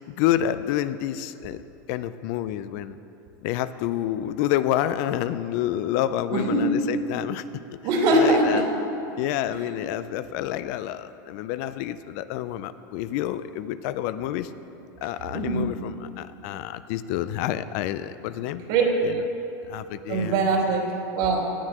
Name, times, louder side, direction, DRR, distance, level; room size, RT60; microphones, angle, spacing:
voice 1, 0.1-1.6 1.9-3.0 3.4-7.4 7.7-7.8 8.1-8.6 9.2-14.5 15.0-18.6 19.0-19.2 19.7-20.4, left 12 dB, 60° left, 13 dB, 0.4 m, -28 dB
voice 2, 6.3-6.7 7.8-8.7 9.1-9.2 9.5-9.7 15.3-15.7 18.7-18.8 20.1-21.4, right 2 dB, 60° right, -1 dB, 2.7 m, -22 dB
17.5 x 11.0 x 3.0 m, 2.8 s
supercardioid pair, 125°, 11 cm